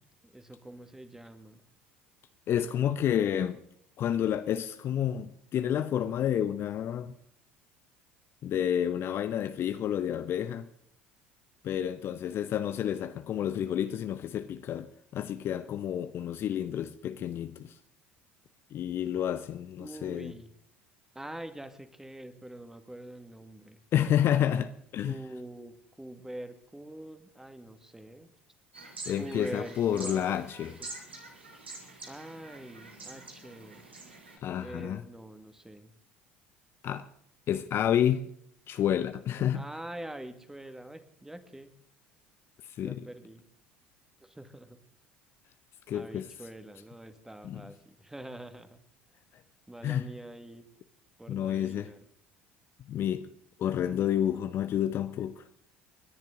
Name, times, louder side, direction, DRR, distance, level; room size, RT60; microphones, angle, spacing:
voice 1, 0.2-1.6 19.8-20.5 21.1-23.8 25.1-28.3 29.2-30.9 32.1-33.8 34.6-35.9 39.5-41.8 42.8-43.4 44.2-44.8 45.9-48.8 49.7-50.7 51.2-52.0, right 1 dB, 5° right, 1.8 m, -45 dB
voice 2, 2.5-3.6 4.0-7.1 8.4-10.7 11.6-17.8 18.7-20.3 23.9-25.2 29.1-30.8 34.4-35.0 36.8-37.1 37.5-38.3 38.7-39.6 42.8-43.1 45.9-46.2 47.4-47.6 49.8-50.1 51.3-51.9 52.9-53.3 53.6-55.4, left 10 dB, 45° left, 0.7 m, -30 dB
sound 1, 28.7-34.4, right 3 dB, 85° right, 2.4 m, -46 dB
29.0 x 10.5 x 3.8 m
figure-of-eight pair, 60°, 6 cm